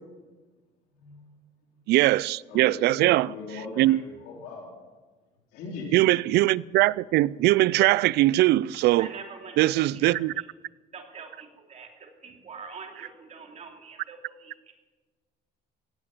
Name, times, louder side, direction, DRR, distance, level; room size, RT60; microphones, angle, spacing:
voice 1, 1.9-3.3 3.8-4.0 5.9-9.1 9.6-10.3, right 17 dB, 75° right, 0.4 m, -21 dB
voice 2, 2.5-4.7 5.5-6.0, left 3 dB, 90° left, 4.0 m, -39 dB
voice 3, 9.0-10.5 10.9-14.7, right 5 dB, 40° right, 3.0 m, -44 dB
16.5 x 8.4 x 8.8 m
cardioid pair, 110°, 17 cm